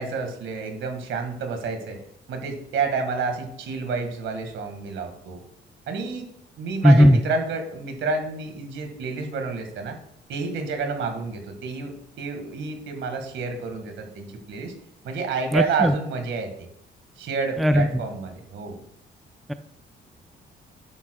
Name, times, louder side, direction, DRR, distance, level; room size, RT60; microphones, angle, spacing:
voice 1, 0.0-2.0 2.3-5.4 5.9-6.3 6.6-10.0 10.3-14.7 15.0-16.5 17.2-18.8, right 4 dB, 75° right, 5 dB, 1.8 m, -29 dB
voice 2, 6.8-7.2 15.5-15.9 17.6-18.0 19.5-19.6, equal, ahead, 10 dB, 0.4 m, -16 dB
10.5 x 7.7 x 2.3 m, 0.76 s
cardioid pair, 90°, 20 cm